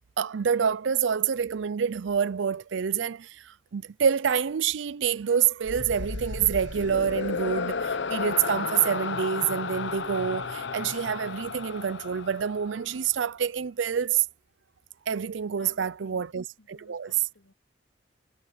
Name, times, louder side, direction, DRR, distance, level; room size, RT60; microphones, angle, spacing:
voice 1, 0.2-14.3 15.1-17.3, right 7 dB, 70° right, 0.5 m, -27 dB
sound 1, 5.6-13.0, left 5 dB, 65° left, 0.8 m, -33 dB
voice 2, 15.6-16.3 16.6-17.5, left 3 dB, 85° left, 2.8 m, -56 dB
head